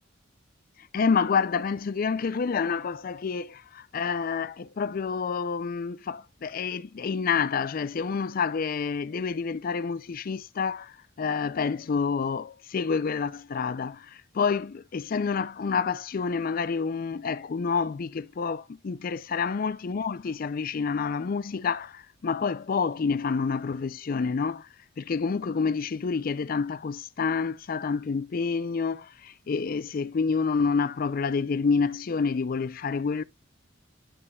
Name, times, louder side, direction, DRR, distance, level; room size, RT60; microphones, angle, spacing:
voice 1, 0.9-24.7 25.0-33.2, left 5 dB, 45° left, 0.4 m, -28 dB
11.0 x 5.4 x 2.3 m
head